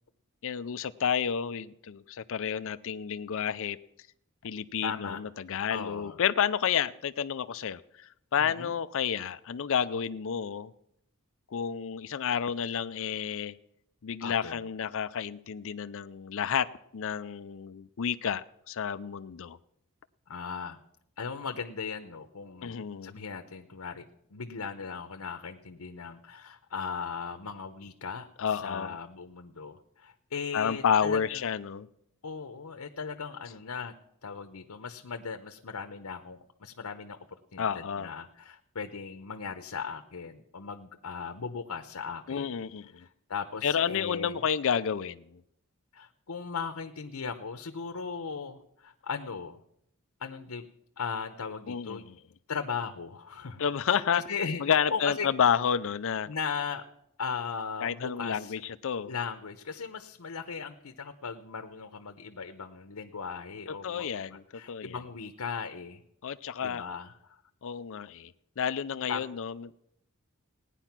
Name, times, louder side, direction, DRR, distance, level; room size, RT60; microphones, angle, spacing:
voice 1, 0.4-3.8 4.4-10.7 11.5-13.6 14.0-19.6 22.6-23.2 28.4-29.0 30.5-31.9 37.6-38.1 42.3-43.1 43.6-45.4 51.7-52.2 53.6-54.2 54.6-56.3 57.8-59.1 63.8-64.4 64.7-65.0 66.2-66.9 67.6-69.7, left 7 dB, 65° left, 13 dB, 0.5 m, -30 dB
voice 2, 4.8-5.2 5.7-6.2 8.4-8.7 14.2-14.6 20.3-20.8 21.2-31.4 32.2-33.9 34.2-37.2 37.5-42.5 43.0-44.4 45.9-49.6 50.2-50.7 51.0-52.1 52.5-53.6 53.9-54.6 54.9-55.3 56.3-56.8 57.2-58.5 59.1-66.0 66.6-67.4 69.1-69.2, left 5 dB, 90° left, 7 dB, 0.9 m, -38 dB
17.5 x 9.9 x 5.9 m, 0.77 s
head